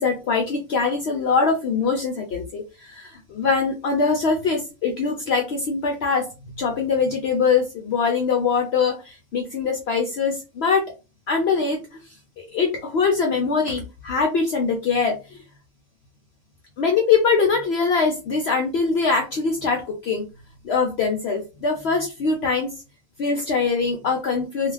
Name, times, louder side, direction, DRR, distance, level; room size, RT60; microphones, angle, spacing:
voice 1, 0.0-10.8 11.3-11.8 12.4-15.4 16.8-20.2 20.6-22.7 23.2-24.7, left 5 dB, 65° left, 2 dB, 0.6 m, -23 dB
2.4 x 2.4 x 3.2 m, 0.30 s
omnidirectional pair, 1.5 m